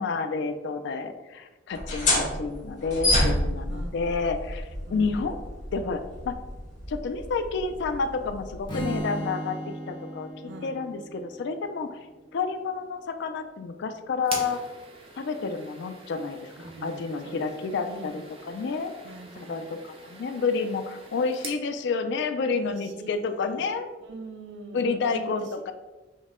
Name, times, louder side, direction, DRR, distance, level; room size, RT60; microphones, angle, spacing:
voice 1, 0.0-5.4 5.7-6.4 6.9-12.0 12.3-14.6 15.2-18.9 19.4-23.9 24.7-25.7, left 4 dB, 65° left, 8 dB, 0.4 m, -30 dB
sound 1, 1.7-9.0, left 1 dB, 45° left, 1.2 m, -29 dB
voice 2, 3.7-4.0 4.9-5.2 10.5-10.7 16.6-18.2 19.0-19.7 22.5-23.7 24.0-25.3, right 2 dB, 65° right, 5 dB, 0.5 m, -42 dB
Strum, 8.7-12.8, right 1 dB, 25° left, 0.8 m, -37 dB
sound 2, 14.2-21.6, right 3 dB, 30° right, 0.7 m, -43 dB
5.3 x 2.1 x 3.6 m, 1.1 s
head